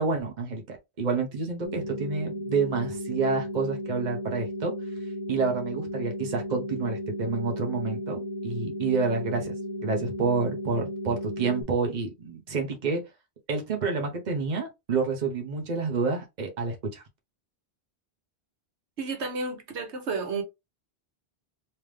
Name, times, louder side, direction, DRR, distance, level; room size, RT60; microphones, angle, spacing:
voice 1, 0.0-4.7 5.3-9.5 9.8-13.0 13.5-17.0, right 4 dB, 45° right, 1.0 m, -28 dB
sound 1, 1.6-11.6, equal, 25° left, 0.8 m, -35 dB
voice 2, 19.0-20.4, right 4 dB, 90° right, 1.3 m, -31 dB
3.4 x 2.8 x 3.2 m
omnidirectional pair, 1.1 m